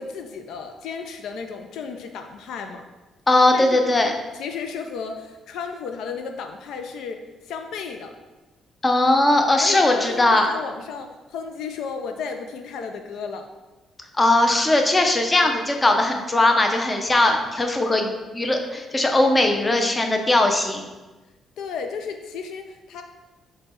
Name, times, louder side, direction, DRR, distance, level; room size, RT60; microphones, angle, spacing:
voice 1, 0.0-2.9 3.5-3.8 4.4-7.2 7.5-8.1 9.6-13.5 21.6-23.0, left 5 dB, 80° left, 5 dB, 0.3 m, -33 dB
voice 2, 3.3-4.1 8.8-10.5 14.2-20.8, left 2 dB, 20° left, 3 dB, 0.6 m, -19 dB
5.0 x 2.2 x 4.3 m, 1.2 s
cardioid pair, 90°, 0 cm